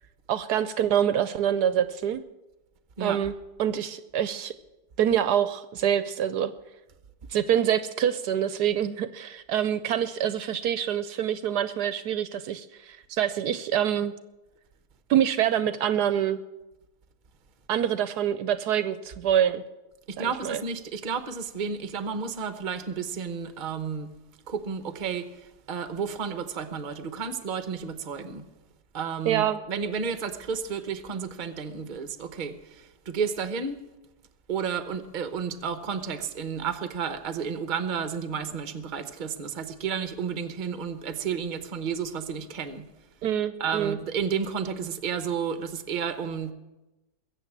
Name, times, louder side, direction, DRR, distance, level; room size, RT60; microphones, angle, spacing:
voice 1, 0.3-2.2 3.0-3.3 3.6-4.5 5.0-6.5 7.3-14.1 15.1-16.4 17.7-19.6 20.2-20.6 29.3-29.6 43.2-44.0, right 10 dB, 70° right, 13 dB, 1.2 m, -26 dB
voice 2, 20.1-24.1 24.5-28.5 28.9-33.8 34.5-42.9 43.6-46.5, right 6 dB, 35° right, 10 dB, 0.9 m, -32 dB
21.5 x 8.0 x 7.3 m, 1.0 s
omnidirectional pair, 1.9 m